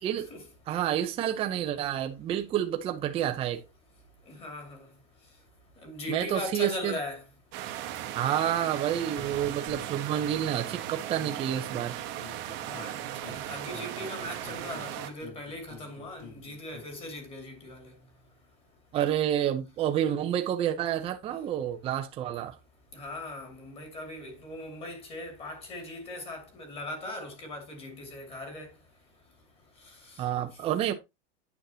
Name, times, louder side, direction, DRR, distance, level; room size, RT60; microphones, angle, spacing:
voice 1, 0.7-3.7 6.1-7.0 8.1-12.0 18.9-22.6 30.2-30.9, right 10 dB, 20° right, 0.6 m, -29 dB
voice 2, 4.3-4.9 5.8-7.2 9.1-9.3 12.6-17.9 22.9-28.7 29.8-30.2, left 1 dB, 20° left, 2.4 m, -40 dB
sound 1, 7.5-15.1, right 12 dB, 35° right, 1.0 m, -37 dB
sound 2, 9.1-10.8 11.2-12.9 13.2-16.9, left 3 dB, 75° left, 3.4 m, -49 dB
9.1 x 6.4 x 2.8 m
supercardioid pair, 165°, 32 cm